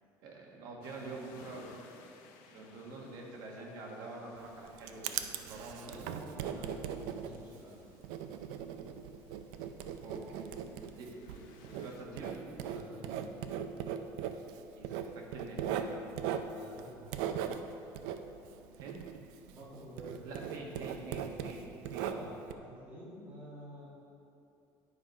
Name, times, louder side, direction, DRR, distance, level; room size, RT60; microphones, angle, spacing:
voice 1, 0.2-1.8 2.4-6.0 6.4-6.8 10.0-10.5 10.9-12.8 14.8-16.1 18.7-19.0 20.2-22.2, right 2 dB, 50° right, -1 dB, 1.4 m, -47 dB
sound 1, 0.8-12.0, left 5 dB, 80° left, 0.8 m, -61 dB
Writing, 4.4-19.7 20.0-22.5, right 8 dB, 80° right, 0.4 m, -39 dB
voice 2, 5.8-7.8 12.6-13.2 16.5-17.5 19.5-20.3 21.9-24.0, equal, 20° right, -6 dB, 1.7 m, -49 dB
9.7 x 4.7 x 5.4 m, 2.7 s
cardioid pair, 175°, 8 cm